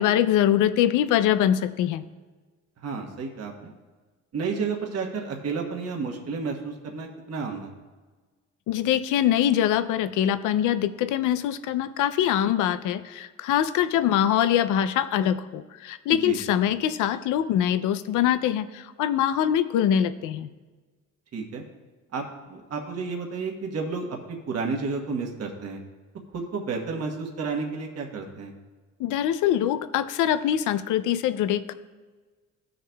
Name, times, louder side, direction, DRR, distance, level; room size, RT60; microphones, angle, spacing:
voice 1, 0.0-2.0 8.7-20.5 29.0-31.7, left 10 dB, 90° left, 13 dB, 0.5 m, -23 dB
voice 2, 2.8-3.7 4.3-7.7 16.1-16.4 21.3-21.6 22.1-25.8 26.3-28.5, right 4 dB, 55° right, 1 dB, 1.2 m, -31 dB
14.5 x 6.5 x 2.3 m, 1.3 s
cardioid pair, 90°, 30 cm